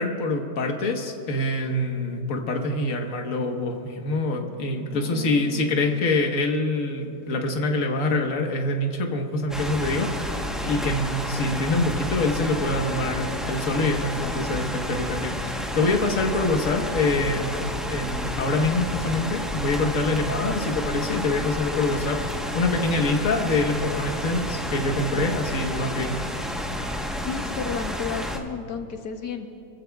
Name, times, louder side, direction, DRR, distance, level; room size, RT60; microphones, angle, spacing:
voice 1, 0.0-26.2, left 2 dB, 50° left, 3 dB, 1.6 m, -25 dB
voice 2, 4.9-6.0 27.2-29.5, left 6 dB, 70° left, 5 dB, 1.4 m, -33 dB
sound 1, 9.5-28.4, equal, ahead, 0.6 m, -30 dB
28.5 x 15.0 x 2.3 m, 2.8 s
omnidirectional pair, 1.9 m